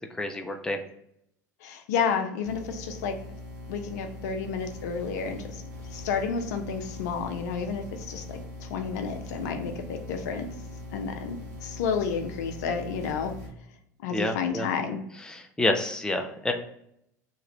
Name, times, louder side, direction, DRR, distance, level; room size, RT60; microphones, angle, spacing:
voice 1, 0.1-0.8 14.1-14.7 15.3-16.5, left 1 dB, 10° left, 4 dB, 0.5 m, -28 dB
voice 2, 1.6-3.2 3.7-5.6 5.9-10.5 10.9-13.3 14.0-15.0, left 6 dB, 70° left, 6 dB, 0.5 m, -31 dB
sound 1, 2.4-13.5, left 1 dB, 80° right, 0.9 m, -41 dB
3.0 x 2.5 x 4.2 m, 0.75 s
hypercardioid pair, 75°, 9 cm